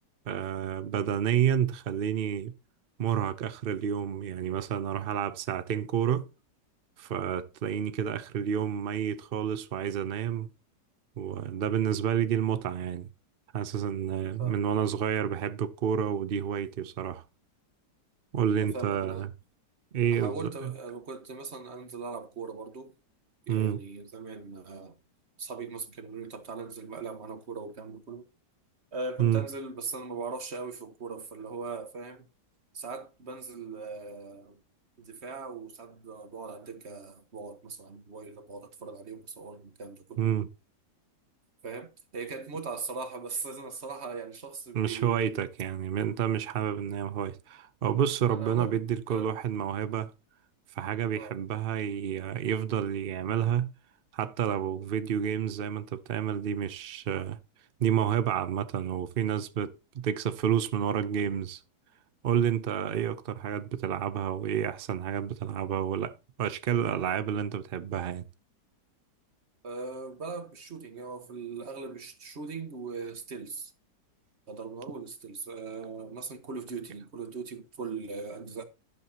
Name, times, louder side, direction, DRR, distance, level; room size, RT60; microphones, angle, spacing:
voice 1, 0.3-2.5 3.0-6.3 7.0-10.5 11.2-13.1 13.5-17.2 18.3-19.3 19.9-20.7 23.5-23.8 29.2-29.4 40.2-40.5 44.7-50.1 50.8-53.7 54.1-57.4 57.8-61.6 62.2-68.2, right 9 dB, 70° right, 0.5 m, -29 dB
voice 2, 14.2-14.7 18.6-19.3 20.0-22.9 23.5-25.0 25.4-28.3 28.9-32.3 32.7-34.6 35.0-40.4 41.6-45.4 46.2-46.4 48.3-48.8 49.1-49.3 51.2-51.4 69.6-73.7 74.5-78.6, right 4 dB, 40° right, 1.6 m, -40 dB
12.5 x 11.0 x 2.9 m
omnidirectional pair, 1.9 m